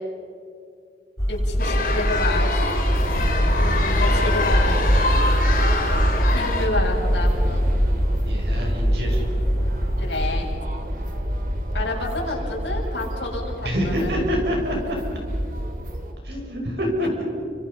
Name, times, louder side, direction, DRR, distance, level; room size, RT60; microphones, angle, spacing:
sound 1, 1.2-10.6, equal, 15° left, 3.4 m, -24 dB
voice 1, 1.3-2.7 3.5-5.0 6.3-7.7 10.0-10.5 11.7-14.1, left 2 dB, 75° left, -3 dB, 6.7 m, -29 dB
sound 2, 1.6-6.7, left 3 dB, 50° left, 3.8 m, -26 dB
sound 3, 2.8-16.1, equal, 50° right, 2.8 m, -27 dB
voice 2, 3.9-4.5 8.2-9.2 11.8-12.5 13.6-15.0 16.2-17.2, equal, 70° right, 0 dB, 6.7 m, -27 dB
30.0 x 26.0 x 5.6 m, 2.5 s
head